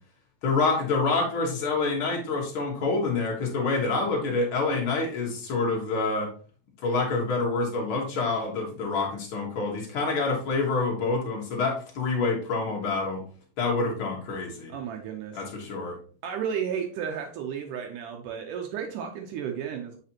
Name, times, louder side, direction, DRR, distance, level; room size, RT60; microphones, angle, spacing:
voice 1, 0.4-6.3 6.8-13.2 13.6-14.7 15.3-16.0, left 3 dB, 90° left, -2 dB, 1.1 m, -27 dB
voice 2, 14.7-15.4 16.2-20.0, right 8 dB, 80° right, 3 dB, 1.8 m, -33 dB
8.3 x 4.9 x 2.9 m, 0.43 s
omnidirectional pair, 4.5 m